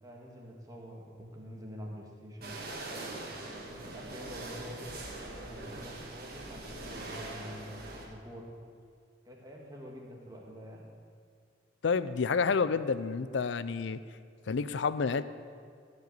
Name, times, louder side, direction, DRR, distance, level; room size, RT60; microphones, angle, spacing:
voice 1, 0.0-2.6 3.1-8.6 9.2-10.9, equal, 20° right, -1 dB, 1.8 m, -47 dB
sound 1, 2.4-8.1, right 2 dB, 50° right, 1.8 m, -42 dB
voice 2, 11.8-14.0 14.5-15.2, left 5 dB, 70° left, 14 dB, 0.5 m, -29 dB
14.5 x 5.4 x 8.2 m, 2.2 s
head